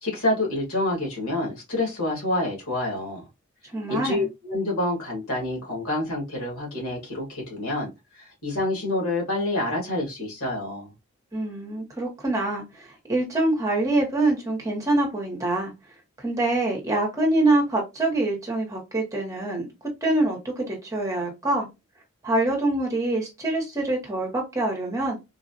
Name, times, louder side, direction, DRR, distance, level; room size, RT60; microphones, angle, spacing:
voice 1, 0.0-3.3 3.9-7.9 8.2-10.9, left 1 dB, 85° left, 1.9 m, -27 dB
voice 2, 3.7-4.3 11.3-15.7 16.2-19.7 20.0-21.7 22.2-25.2, right 2 dB, 15° right, 0.9 m, -25 dB
3.8 x 2.3 x 2.5 m
head